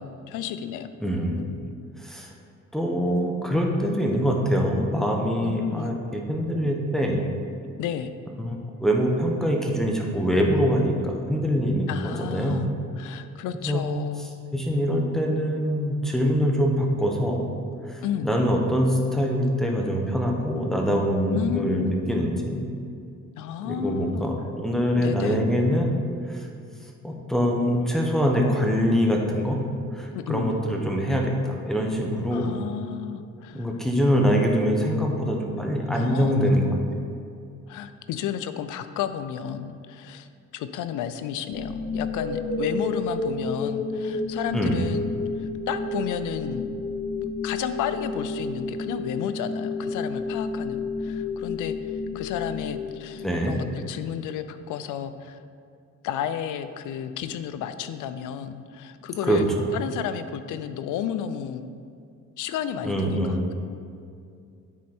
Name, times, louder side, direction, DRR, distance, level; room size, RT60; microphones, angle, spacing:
voice 1, 0.0-0.9 1.4-1.7 5.4-6.0 7.8-8.1 11.9-12.7 13.0-14.3 18.0-18.3 21.3-22.0 23.3-24.3 25.0-25.4 30.1-30.6 32.3-33.7 35.9-36.5 37.7-40.3 40.5-46.6 47.4-55.4 56.0-59.5 59.7-61.7 62.4-63.5, left 9 dB, 85° left, 11 dB, 0.5 m, -32 dB
voice 2, 1.0-1.4 2.0-2.3 2.7-7.2 8.4-12.6 13.5-13.8 14.5-17.6 17.9-22.6 23.6-26.0 26.3-26.5 27.0-29.6 29.9-32.5 33.5-36.7 44.5-44.8 53.2-53.5 59.3-59.4 62.8-63.4, equal, ahead, 0 dB, 1.1 m, -24 dB
sound 1, 41.5-53.6, left 3 dB, 35° left, 1.6 m, -31 dB
9.9 x 4.2 x 4.4 m, 2.4 s
cardioid pair, 90°, 30 cm